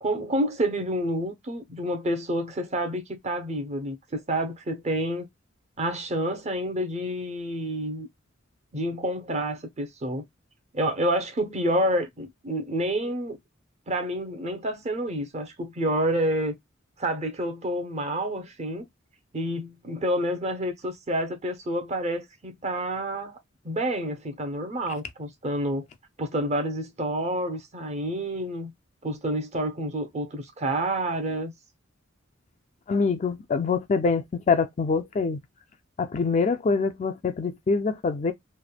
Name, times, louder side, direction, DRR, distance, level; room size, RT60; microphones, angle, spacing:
voice 1, 0.0-5.3 5.8-8.1 8.7-10.2 10.7-13.4 13.9-16.5 17.0-18.9 19.3-23.4 23.6-25.9 26.2-28.7 29.0-31.5, right 1 dB, 35° right, 0.7 m, -28 dB
voice 2, 32.9-35.4 36.0-38.3, left 4 dB, 35° left, 0.3 m, -25 dB
3.3 x 2.1 x 2.2 m
head